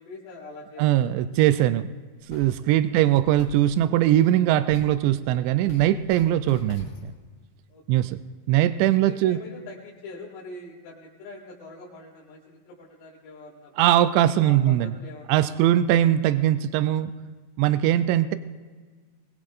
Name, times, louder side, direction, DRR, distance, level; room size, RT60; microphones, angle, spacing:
voice 1, 0.0-1.1 2.6-3.0 7.7-8.1 9.0-14.1 14.4-15.7, left 3 dB, 90° left, -6 dB, 4.9 m, -44 dB
voice 2, 0.8-1.9 2.3-7.1 7.9-8.2 8.5-9.4 13.8-14.9 15.3-17.1 17.6-18.4, right 12 dB, 85° right, 12 dB, 2.5 m, -21 dB
sound 1, 2.2-7.1, left 2 dB, 70° left, 4.7 m, -46 dB
24.5 x 20.0 x 2.5 m, 1.5 s
omnidirectional pair, 5.8 m